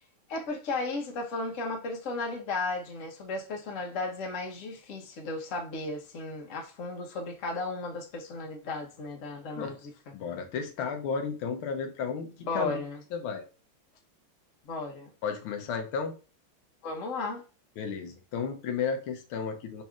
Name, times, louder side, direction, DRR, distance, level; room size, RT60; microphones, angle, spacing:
voice 1, 0.3-10.1 12.4-13.0 14.6-15.1 16.8-17.4, left 3 dB, 50° left, 1.1 m, -35 dB
voice 2, 10.1-12.3 12.5-12.8 13.1-13.5 15.2-16.1 17.8-19.8, left 6 dB, 85° left, 1.7 m, -33 dB
5.4 x 4.2 x 2.4 m
omnidirectional pair, 2.2 m